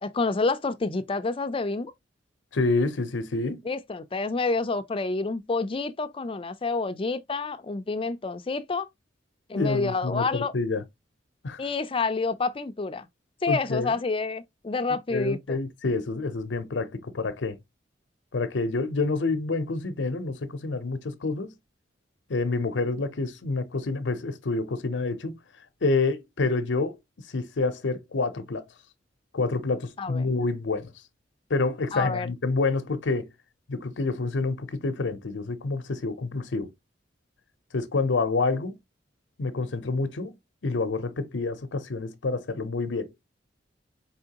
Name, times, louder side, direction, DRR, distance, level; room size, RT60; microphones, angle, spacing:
voice 1, 0.0-1.9 3.6-8.9 9.5-10.5 11.6-13.1 13.4-15.6 30.0-30.3 31.9-32.3, left 3 dB, 30° left, 0.5 m, -28 dB
voice 2, 2.5-3.6 9.5-10.8 11.4-11.6 13.5-13.9 15.1-17.6 18.3-21.5 22.3-25.4 25.8-27.0 27.3-28.6 29.3-30.9 31.5-33.3 33.7-36.7 37.7-38.7 39.4-40.4 40.6-43.1, left 3 dB, 80° left, 0.7 m, -28 dB
4.3 x 3.6 x 2.8 m
head